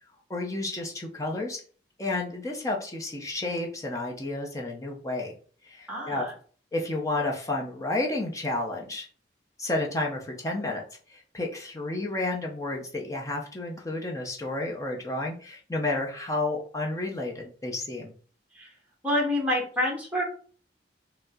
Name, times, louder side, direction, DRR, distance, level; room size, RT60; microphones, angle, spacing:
voice 1, 0.3-1.6 2.0-5.3 5.6-6.2 6.7-9.1 9.6-10.8 11.1-18.1, left 2 dB, 20° left, 0 dB, 0.7 m, -31 dB
voice 2, 5.9-6.3 18.5-18.7 19.0-20.2, left 1 dB, 10° right, -2 dB, 1.2 m, -27 dB
5.1 x 2.1 x 3.7 m, 0.43 s
head